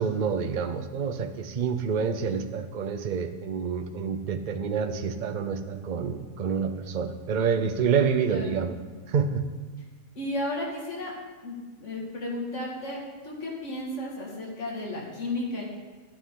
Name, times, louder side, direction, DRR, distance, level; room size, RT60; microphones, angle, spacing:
voice 1, 0.0-8.7 9.1-9.4, right 6 dB, 45° right, 8 dB, 0.6 m, -28 dB
voice 2, 10.2-11.1 11.4-15.6, left 1 dB, 55° left, -3 dB, 2.4 m, -33 dB
13.0 x 8.8 x 3.8 m, 1.3 s
omnidirectional pair, 1.5 m